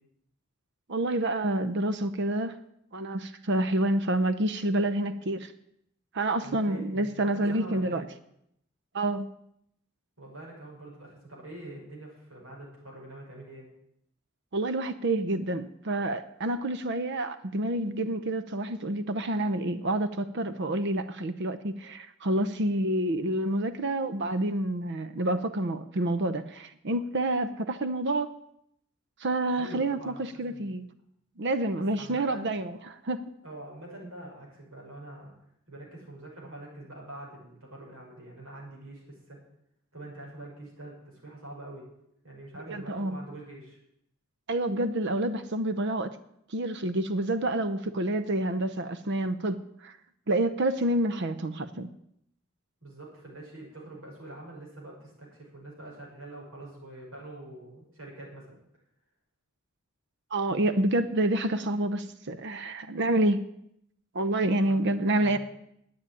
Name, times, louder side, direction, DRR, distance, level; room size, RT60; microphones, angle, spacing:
voice 1, 0.9-2.6 2.9-5.5 6.1-8.0 8.9-9.3 14.5-28.3 29.2-30.9 31.4-32.7 33.0-33.2 42.7-43.2 44.5-46.2 46.5-50.0 50.3-51.9 60.3-63.4 64.1-65.4, right 1 dB, 55° right, 12 dB, 0.7 m, -28 dB
voice 2, 6.4-8.0 10.2-13.7 29.6-30.8 31.9-32.5 33.4-35.3 35.7-39.4 39.9-41.9 42.2-43.8 52.8-58.6 64.7-65.4, right 1 dB, 75° right, -2 dB, 6.3 m, -45 dB
10.0 x 8.6 x 9.9 m, 0.75 s
head